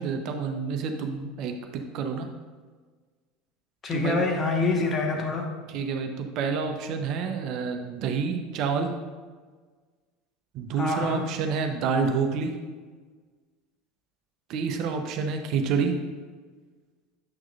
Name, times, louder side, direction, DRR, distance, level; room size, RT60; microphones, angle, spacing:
voice 1, 0.0-2.3 3.9-4.2 5.7-8.9 10.5-12.6 14.5-16.0, right 5 dB, 50° right, 5 dB, 0.8 m, -28 dB
voice 2, 3.8-5.5 10.8-11.3, left 3 dB, 30° left, 2 dB, 1.3 m, -26 dB
8.7 x 6.2 x 2.5 m, 1.5 s
figure-of-eight pair, 75°, 0 cm